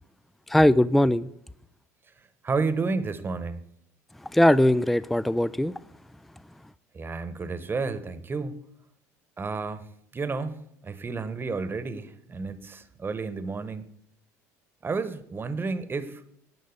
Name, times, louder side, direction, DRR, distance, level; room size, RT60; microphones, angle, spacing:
voice 1, 0.5-1.3 4.3-5.7, left 1 dB, ahead, 18 dB, 0.4 m, -20 dB
voice 2, 2.4-3.6 6.9-8.6 9.4-9.9 10.1-13.8 14.8-16.2, right 4 dB, 25° right, 13 dB, 1.1 m, -31 dB
10.5 x 6.3 x 8.2 m, 0.72 s
hypercardioid pair, 70°, 8 cm